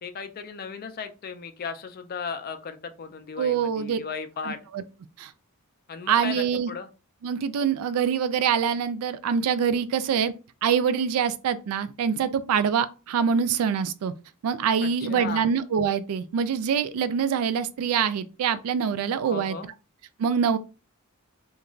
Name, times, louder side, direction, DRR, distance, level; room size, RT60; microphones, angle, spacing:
voice 1, 0.0-4.6 5.9-6.9 14.8-15.5 19.2-19.7, left 5 dB, 45° left, 0.4 m, -36 dB
voice 2, 3.4-4.0 4.4-4.8 5.2-5.3 6.1-6.7 7.2-10.3 10.6-14.1 14.4-19.6 20.2-20.6, right 7 dB, 75° right, 0.3 m, -25 dB
2.4 x 2.2 x 3.0 m
head